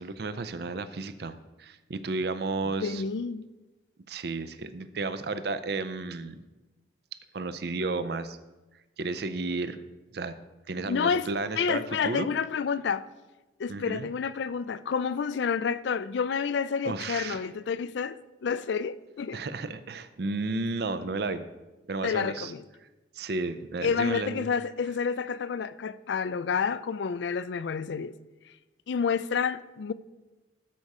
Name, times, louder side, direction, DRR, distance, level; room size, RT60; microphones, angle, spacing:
voice 1, 0.0-3.0 4.1-6.4 7.3-8.4 9.0-9.8 10.1-10.4 10.7-12.3 13.7-14.1 16.8-17.4 19.3-21.4 21.9-22.5 23.1-24.5, right 3 dB, 55° right, 0.5 m, -33 dB
voice 2, 2.6-3.4 10.9-11.3 11.6-13.1 13.6-19.4 22.0-22.7 23.8-28.2 28.9-29.9, left 6 dB, 65° left, 0.4 m, -29 dB
13.0 x 4.8 x 5.4 m
head